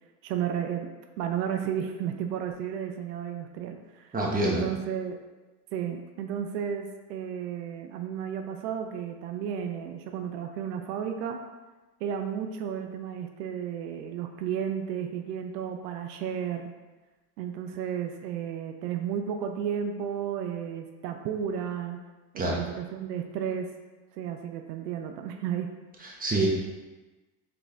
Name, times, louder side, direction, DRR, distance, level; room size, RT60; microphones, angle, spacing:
voice 1, 0.2-0.9 1.2-4.2 4.4-5.2 5.7-11.4 12.0-16.7 17.4-22.0 22.5-23.7 24.2-25.7, right 8 dB, 85° right, 5 dB, 0.6 m, -33 dB
voice 2, 4.1-4.6 22.4-22.6 26.0-26.5, right 2 dB, 20° right, -2 dB, 1.2 m, -26 dB
3.9 x 3.8 x 3.4 m, 1.2 s
supercardioid pair, 85°, 47 cm